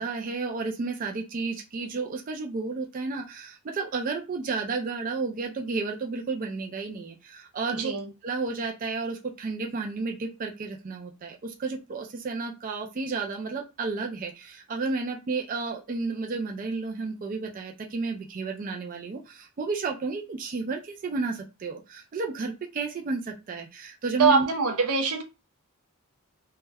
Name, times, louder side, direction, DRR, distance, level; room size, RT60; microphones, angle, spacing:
voice 1, 0.0-7.9 8.2-24.5, right 4 dB, 40° right, 0.3 m, -32 dB
voice 2, 7.7-8.1 24.2-25.2, right 5 dB, 85° right, 0.6 m, -23 dB
2.2 x 2.0 x 3.3 m
head